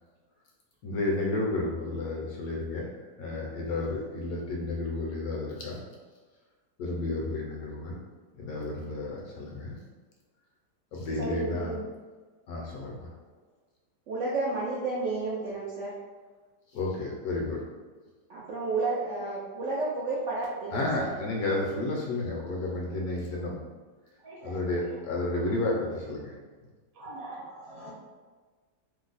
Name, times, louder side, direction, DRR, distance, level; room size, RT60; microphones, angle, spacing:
voice 1, 0.8-5.8 6.8-8.0 8.3-9.8 10.9-11.7 12.5-13.1 16.7-17.6 20.7-23.6 24.4-26.3, left 2 dB, 70° left, -2 dB, 0.9 m, -31 dB
voice 2, 11.2-11.8 14.1-16.0 18.3-21.2, right 3 dB, 90° right, -5 dB, 0.6 m, -31 dB
voice 3, 24.2-25.0 26.9-27.9, right 2 dB, 60° right, -4 dB, 1.2 m, -43 dB
2.9 x 2.0 x 3.9 m, 1.4 s
omnidirectional pair, 1.8 m